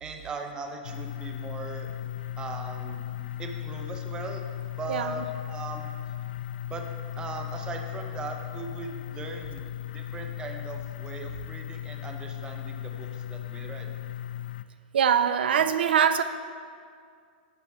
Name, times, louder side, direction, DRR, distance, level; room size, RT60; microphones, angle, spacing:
voice 1, 0.0-1.9 2.4-3.0 3.4-4.4 4.8-5.9 6.7-6.8 7.1-9.7 9.9-13.9, right 3 dB, 15° right, 4 dB, 0.8 m, -39 dB
sound 1, 0.8-14.6, left 12 dB, 65° left, 0.3 m, -37 dB
voice 2, 14.9-16.2, right 8 dB, 85° right, 11 dB, 0.5 m, -23 dB
12.0 x 8.0 x 3.6 m, 2.2 s
hypercardioid pair, 150°, 5 cm